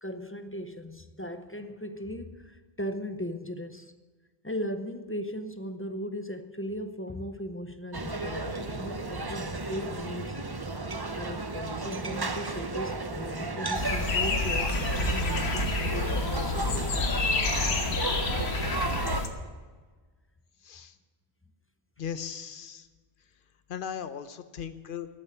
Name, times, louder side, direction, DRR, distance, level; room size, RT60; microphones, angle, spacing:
voice 1, 0.0-3.9 4.4-10.4 11.2-17.0, equal, 15° left, 9 dB, 0.5 m, -38 dB
sound 1, 7.9-19.2, right 3 dB, 25° right, 0.8 m, -34 dB
sound 2, 13.7-19.3, left 3 dB, 80° left, 1.4 m, -28 dB
voice 2, 22.0-22.9 23.7-25.1, left 8 dB, 55° left, 12 dB, 0.9 m, -37 dB
12.5 x 7.6 x 10.0 m, 1.4 s
omnidirectional pair, 1.1 m